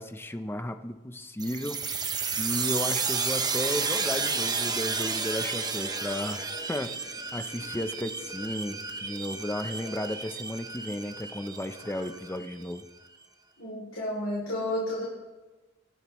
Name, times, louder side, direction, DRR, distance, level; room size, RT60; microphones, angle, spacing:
voice 1, 0.0-1.8 2.4-6.4 6.7-6.9 7.3-12.8, left 1 dB, 10° left, 8 dB, 0.7 m, -34 dB
sound 1, 1.4-12.8, right 4 dB, 20° right, 1.0 m, -32 dB
voice 2, 13.6-15.0, left 1 dB, 85° left, -6 dB, 3.1 m, -31 dB
23.5 x 10.5 x 3.1 m, 1.2 s
head